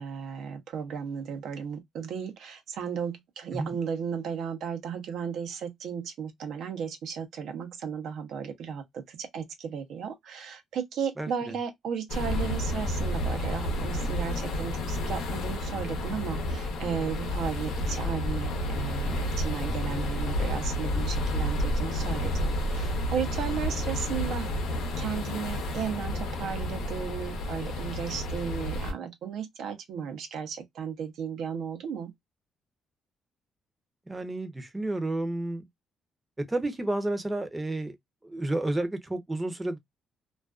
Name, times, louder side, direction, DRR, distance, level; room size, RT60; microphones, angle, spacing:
voice 1, 0.0-24.5 25.0-32.1, right 7 dB, 75° right, 0.6 m, -35 dB
voice 2, 11.2-11.6 34.1-35.6 36.4-38.0 38.2-39.8, right 2 dB, 15° right, 0.6 m, -31 dB
sound 1, 12.1-28.9, left 1 dB, 85° left, 0.7 m, -30 dB
2.4 x 2.2 x 2.3 m
cardioid pair, 90°, 0 cm